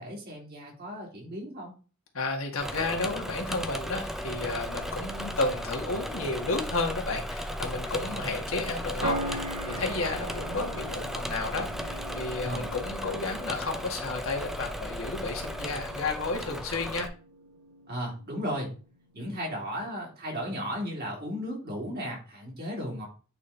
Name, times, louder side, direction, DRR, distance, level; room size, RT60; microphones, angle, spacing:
voice 1, 0.0-1.7 12.4-12.7 17.9-18.7 19.1-23.1, equal, 45° right, 3.5 m, -35 dB
voice 2, 2.1-17.1, left 3 dB, 65° left, 1.9 m, -32 dB
Engine / Mechanisms, 2.6-17.1, equal, ahead, 0.6 m, -36 dB
sound 1, 9.0-19.3, right 1 dB, 80° right, 1.8 m, -41 dB
8.8 x 4.2 x 4.4 m
head